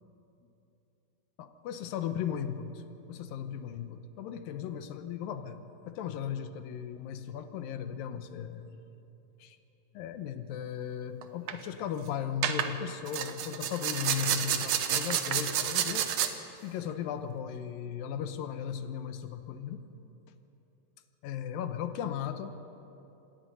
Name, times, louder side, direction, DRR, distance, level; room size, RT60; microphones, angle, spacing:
voice 1, 1.4-2.8 3.1-8.7 9.4-9.6 9.9-16.1 16.6-19.8 21.2-22.7, left 8 dB, 80° left, 9 dB, 2.6 m, -36 dB
sound 1, 11.2-11.5 12.4-12.7 13.1-16.3, right 9 dB, 70° right, 1.6 m, -30 dB
27.0 x 10.5 x 9.1 m, 2.9 s
omnidirectional pair, 4.1 m